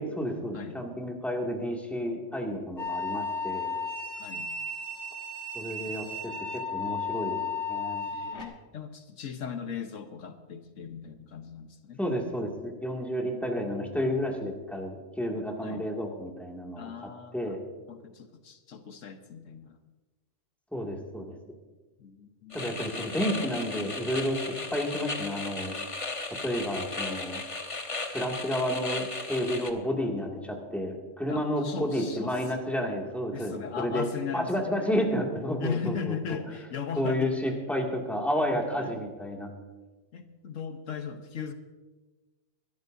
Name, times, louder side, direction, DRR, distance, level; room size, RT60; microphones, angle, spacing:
voice 1, 0.0-3.7 5.5-7.4 7.7-8.0 12.0-16.9 17.3-17.6 20.7-21.4 22.5-25.7 26.4-27.4 28.1-34.1 34.3-36.2 37.0-39.5, equal, ahead, -1 dB, 2.3 m, -31 dB
sound 1, 2.8-8.5, left 4 dB, 65° left, 2.0 m, -34 dB
voice 2, 4.2-4.5 8.1-12.0 13.2-13.9 15.6-15.9 16.8-17.6 17.9-19.8 22.0-23.1 23.7-24.0 31.3-32.3 33.3-34.9 35.6-37.3 38.8-39.0 40.1-41.5, left 6 dB, 85° left, 7 dB, 1.4 m, -38 dB
sound 2, 22.5-29.7, left 3 dB, 25° left, 1.1 m, -36 dB
24.0 x 12.5 x 2.7 m, 1.2 s
omnidirectional pair, 1.3 m